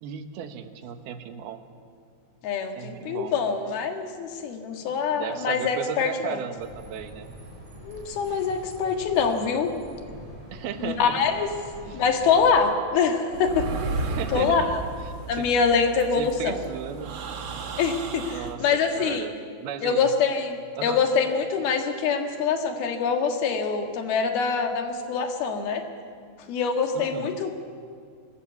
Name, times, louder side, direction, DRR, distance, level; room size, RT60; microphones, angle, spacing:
voice 1, 0.0-1.6 2.8-3.4 4.8-7.3 10.5-11.2 11.9-12.0 14.0-14.7 15.1-15.5 16.2-17.2 18.3-18.7 18.9-20.1 20.8-21.0 26.9-27.4, right 8 dB, 80° right, 8 dB, 3.1 m, -35 dB
voice 2, 2.4-6.4 7.8-9.7 10.8-11.5 11.9-13.7 14.3-14.8 15.3-16.6 17.8-19.3 19.8-25.8 26.5-27.5, left 5 dB, 80° left, 4 dB, 3.6 m, -24 dB
sound 1, 6.6-12.7, equal, 10° right, 5.6 m, -44 dB
sound 2, 13.3-18.6, right 3 dB, 60° right, 1.2 m, -34 dB
22.5 x 19.5 x 8.3 m, 2.2 s
omnidirectional pair, 4.4 m